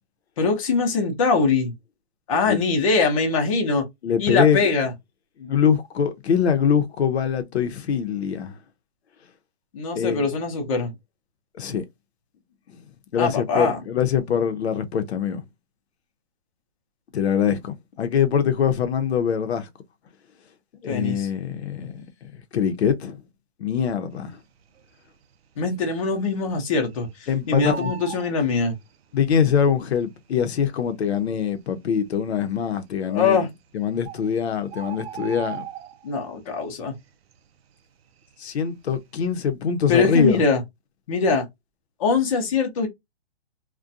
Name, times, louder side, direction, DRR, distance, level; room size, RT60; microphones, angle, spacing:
voice 1, 0.4-1.7 2.3-3.9 4.2-4.9 9.7-10.9 13.2-13.8 20.9-21.3 25.6-28.8 33.1-33.5 36.0-37.0 39.9-40.6 41.1-41.5 42.0-42.9, left 4 dB, 30° left, 0.6 m, -22 dB
voice 2, 4.0-4.6 5.4-8.6 9.9-10.2 11.6-11.9 13.1-15.4 17.1-19.7 20.8-21.9 22.5-23.2 23.6-24.4 27.3-27.9 29.1-33.4 33.7-35.6 38.4-40.4, left 7 dB, 75° left, 0.6 m, -23 dB
Bird, 24.6-25.2 25.6-25.7 25.9-27.1 27.4-29.2 30.1-30.2 30.8-30.9 31.1-31.2 31.8-32.3 33.3-33.4 33.7-33.8 34.0-36.3 36.7-37.0 37.3-38.7 39.0-39.3, right 7 dB, 65° right, 0.5 m, -37 dB
2.4 x 2.2 x 2.5 m
hypercardioid pair, 165°, 32 cm